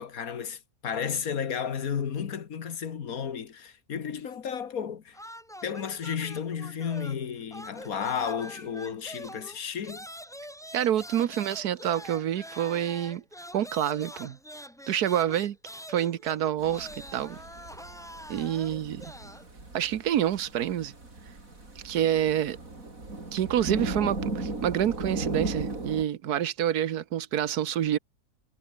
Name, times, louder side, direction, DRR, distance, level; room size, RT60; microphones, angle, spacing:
voice 1, 0.0-5.2 5.6-10.1, left 7 dB, 65° left, 1.8 m, -33 dB
sound 1, 5.1-7.3 7.5-19.5, equal, ahead, 1.8 m, -45 dB
voice 2, 10.7-13.2 13.5-14.4 14.9-15.6 15.9-17.4 18.3-19.1 19.7-20.9 21.8-22.6 23.3-28.0, right 10 dB, 85° right, 1.5 m, -27 dB
sound 2, 16.6-26.0, right 2 dB, 60° right, 5.2 m, -36 dB
omnidirectional pair, 1.6 m